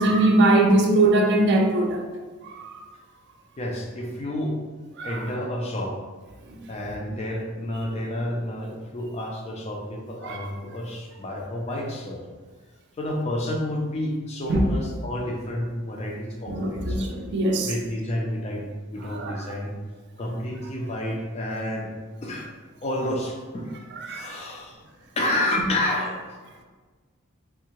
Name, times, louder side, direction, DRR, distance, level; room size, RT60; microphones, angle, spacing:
voice 1, 0.0-2.0 2.4-2.8 5.0-5.2 10.2-10.5 14.5-14.7 16.5-17.7 19.1-19.3 24.0-24.4 25.6-25.7, right 2 dB, 55° right, 2 dB, 0.4 m, -21 dB
voice 2, 3.6-4.6 5.0-6.0 6.7-12.2 13.0-17.1 17.6-19.7 20.2-21.9 22.2-22.5 22.8-23.7 24.0-24.8 25.2-26.2, left 1 dB, 30° left, 0 dB, 0.4 m, -30 dB
3.6 x 2.1 x 2.9 m, 1.4 s
head